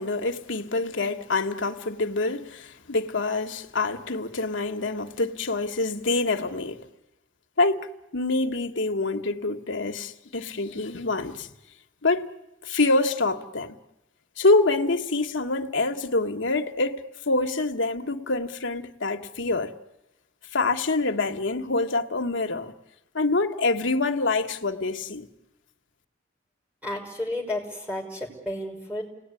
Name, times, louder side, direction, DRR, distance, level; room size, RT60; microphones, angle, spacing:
voice 1, 0.0-6.8 7.6-7.9 8.1-11.5 12.0-12.3 12.6-13.8 14.4-19.7 20.5-22.7 23.1-25.3, left 3 dB, 75° left, 1.4 m, -26 dB
voice 2, 26.8-29.0, left 1 dB, 10° right, 5.7 m, -32 dB
29.0 x 19.0 x 9.8 m
head